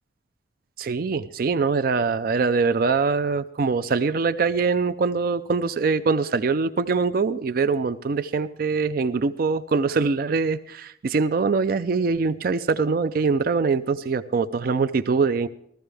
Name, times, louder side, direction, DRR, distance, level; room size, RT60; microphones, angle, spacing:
voice 1, 0.8-15.5, right 4 dB, 55° right, 12 dB, 0.4 m, -23 dB
15.5 x 14.0 x 3.4 m, 0.71 s
head